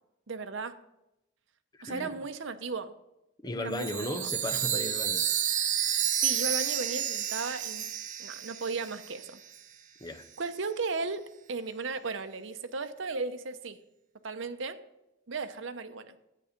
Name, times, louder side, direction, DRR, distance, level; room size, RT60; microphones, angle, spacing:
voice 1, 0.3-0.8 1.8-2.9 3.6-4.3 6.1-7.9 8.2-9.4 10.4-13.8 14.2-14.8 15.3-16.2, right 4 dB, 70° right, 0.8 m, -35 dB
voice 2, 1.7-2.2 3.4-5.8 10.0-10.3, left 1 dB, 20° left, 0.7 m, -37 dB
Chime, 3.7-9.3, right 10 dB, 40° right, 0.8 m, -30 dB
11.5 x 8.4 x 5.2 m
head